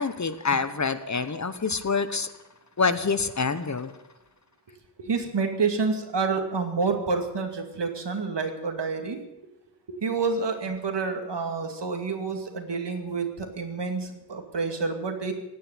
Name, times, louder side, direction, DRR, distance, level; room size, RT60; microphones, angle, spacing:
voice 1, 0.0-2.3 2.8-3.9, left 4 dB, 45° left, 12 dB, 1.1 m, -26 dB
voice 2, 5.0-9.2 9.9-15.3, right 4 dB, 80° right, 5 dB, 2.4 m, -28 dB
17.0 x 9.4 x 9.1 m, 0.92 s
wide cardioid pair, 100°, 41 cm